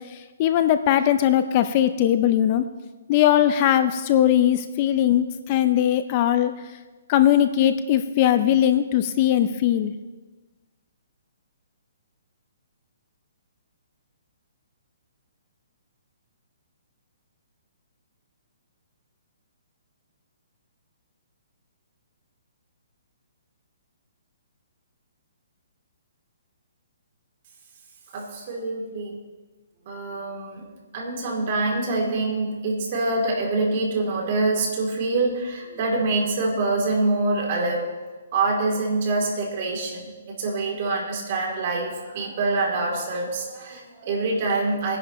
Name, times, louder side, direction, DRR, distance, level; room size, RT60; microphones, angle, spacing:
voice 1, 0.1-2.7 3.1-6.5 7.1-9.9, left 11 dB, 30° left, 10 dB, 0.5 m, -20 dB
voice 2, 28.1-29.2 29.9-30.6 30.9-37.9 38.3-45.0, right 3 dB, 40° right, -1 dB, 3.0 m, -25 dB
20.0 x 10.5 x 3.1 m, 1.2 s
hypercardioid pair, 165°, 0 cm